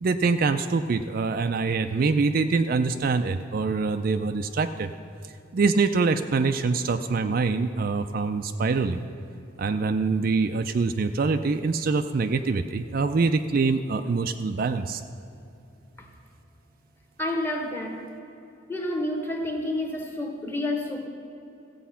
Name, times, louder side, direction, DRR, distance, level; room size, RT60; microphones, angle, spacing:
voice 1, 0.0-4.9 5.5-9.1 9.6-15.0, right 4 dB, 45° right, 8 dB, 0.4 m, -24 dB
voice 2, 17.2-18.1 18.7-21.1, left 1 dB, 10° left, 2 dB, 1.1 m, -29 dB
15.0 x 8.3 x 5.6 m, 2.8 s
head